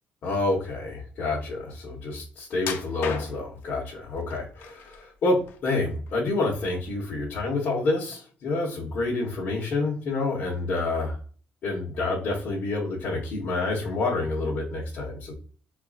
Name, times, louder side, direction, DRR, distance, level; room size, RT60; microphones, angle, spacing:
voice 1, 0.2-11.2 11.6-15.3, left 2 dB, 50° left, -6 dB, 1.2 m, -28 dB
sound 1, 2.6-3.6 4.3-5.0 5.4-6.3 6.6-6.8 7.4-7.5, left 7 dB, 65° left, 0.5 m, -34 dB
4.5 x 2.5 x 2.4 m, 0.41 s
cardioid pair, 160°, 4 cm